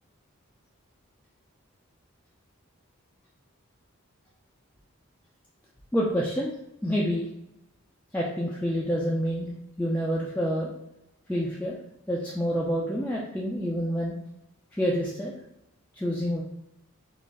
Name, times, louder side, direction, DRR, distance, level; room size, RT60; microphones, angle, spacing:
voice 1, 5.9-6.5 6.8-7.3 8.1-9.5 9.8-10.7 11.3-11.7 12.1-14.2 14.7-15.3 16.0-16.4, equal, 5° left, -4 dB, 0.3 m, -27 dB
3.8 x 2.5 x 3.5 m, 0.85 s
head